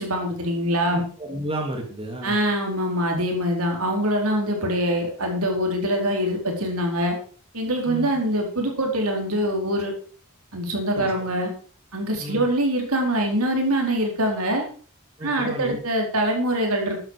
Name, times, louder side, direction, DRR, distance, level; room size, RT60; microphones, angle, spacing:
voice 1, 0.0-1.0 2.2-7.1 7.5-9.9 10.5-11.5 11.9-14.6 15.2-17.0, equal, 85° right, 2 dB, 4.5 m, -24 dB
voice 2, 0.9-2.4 7.9-8.1 11.0-11.1 12.2-12.5 15.2-15.8, right 1 dB, 25° right, 2 dB, 2.7 m, -32 dB
13.0 x 10.5 x 4.9 m, 0.41 s
head